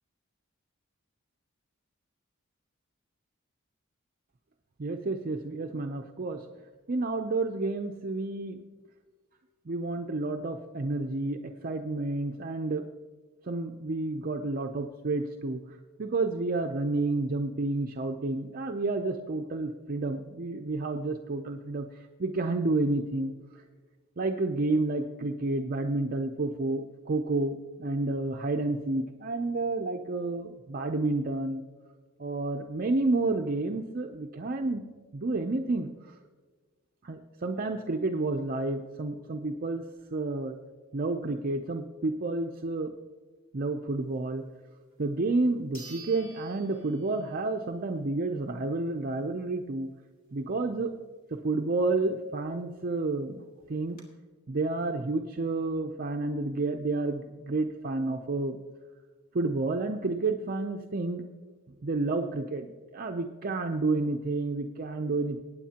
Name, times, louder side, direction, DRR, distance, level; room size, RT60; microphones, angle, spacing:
voice 1, 4.8-6.4 6.9-8.6 9.7-12.8 13.5-23.6 24.2-31.6 32.2-34.8 35.1-36.1 37.0-39.9 40.1-40.6 40.9-42.9 43.5-44.4 45.0-49.9 50.3-50.9 51.3-54.0 54.5-58.6 59.3-61.2 61.8-65.4, right 2 dB, 45° right, 4 dB, 0.5 m, -30 dB
sound 1, 44.9-45.0 45.7-47.5 47.9-48.0 52.6-52.7 52.9-53.0 53.6-54.0, right 3 dB, 40° left, 2.6 m, -49 dB
19.0 x 9.2 x 2.9 m, 1.4 s
head